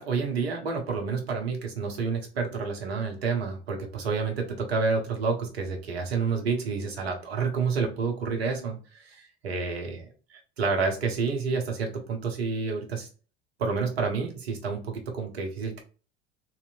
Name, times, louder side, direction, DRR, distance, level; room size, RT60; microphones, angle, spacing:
voice 1, 0.0-13.1 13.6-15.8, right 5 dB, 80° right, 2 dB, 1.0 m, -29 dB
3.1 x 3.0 x 2.4 m, 0.37 s
hypercardioid pair, 70°, 30 cm